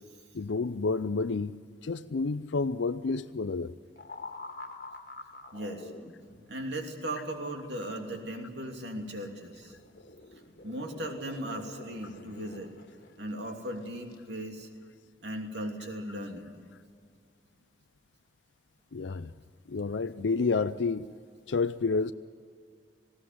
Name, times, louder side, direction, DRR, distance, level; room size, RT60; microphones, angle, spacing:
voice 1, 0.3-1.6 1.8-3.7 18.9-19.3 19.7-21.1 21.5-22.1, left 4 dB, 70° left, 0.5 m, -29 dB
sound 1, 4.0-6.6 9.5-13.4 14.0-14.2, left 2 dB, 50° left, 1.8 m, -47 dB
voice 2, 5.5-5.9 6.5-9.8 10.6-12.7 13.2-14.7 15.2-16.5, right 1 dB, 60° right, 2.9 m, -37 dB
20.0 x 17.0 x 9.4 m
head